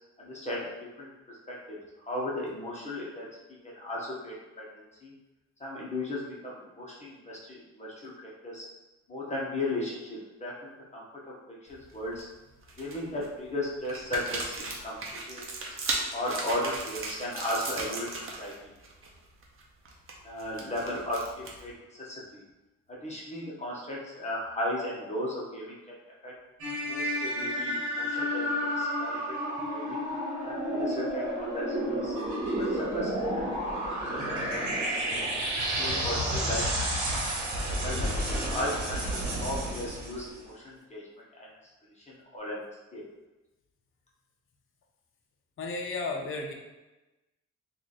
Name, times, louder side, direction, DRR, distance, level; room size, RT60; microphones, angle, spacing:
voice 1, 0.2-0.7 1.0-1.8 2.1-3.3 3.7-5.1 5.6-8.6 9.1-11.3 11.7-12.2 12.8-15.0 15.3-15.4 16.1-18.1 18.4-18.5 20.2-22.4 22.9-25.7 26.2-26.3 26.9-30.0 30.4-32.1 32.6-35.3 35.6-37.2 37.7-38.1 38.4-41.1 41.4-41.5 42.1-42.6 42.9-43.0, left 1 dB, 20° left, -5 dB, 1.0 m, -36 dB
sound 1, 11.7-12.2 12.6-13.3 13.8-18.5 18.8-19.1 19.4-21.7, right 3 dB, 45° right, 0.8 m, -37 dB
sound 2, 26.6-40.3, equal, 70° right, 1.1 m, -31 dB
voice 2, 45.6-46.5, left 3 dB, 45° left, 1 dB, 0.7 m, -33 dB
3.1 x 2.5 x 4.0 m, 1.1 s
cardioid pair, 90°, 30 cm